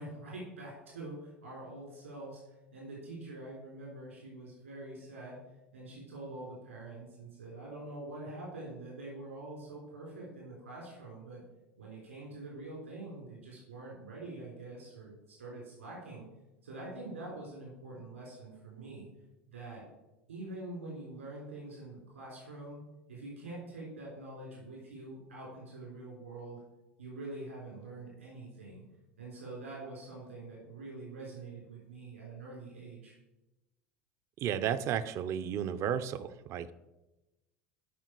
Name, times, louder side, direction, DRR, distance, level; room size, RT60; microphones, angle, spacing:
voice 1, 0.0-2.4 2.7-5.4 5.7-11.4 11.8-16.3 16.6-19.1 19.5-19.8 20.3-22.8 23.1-26.6 27.0-28.8 29.2-33.1, right 2 dB, 80° right, -3 dB, 3.6 m, -45 dB
voice 2, 34.4-36.7, right 9 dB, 45° right, 13 dB, 0.6 m, -33 dB
13.5 x 5.9 x 4.5 m, 1.0 s
figure-of-eight pair, 75°, 7 cm